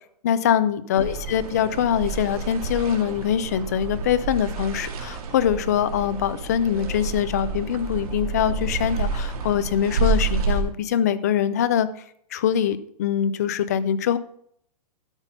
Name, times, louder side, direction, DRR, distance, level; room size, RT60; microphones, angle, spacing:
voice 1, 0.2-11.9 12.3-14.2, left 9 dB, 25° left, 14 dB, 0.4 m, -23 dB
sound 1, 1.0-10.6, right 4 dB, 60° right, 2.3 m, -29 dB
12.5 x 5.6 x 5.4 m, 0.66 s
hypercardioid pair, 180°, 20 cm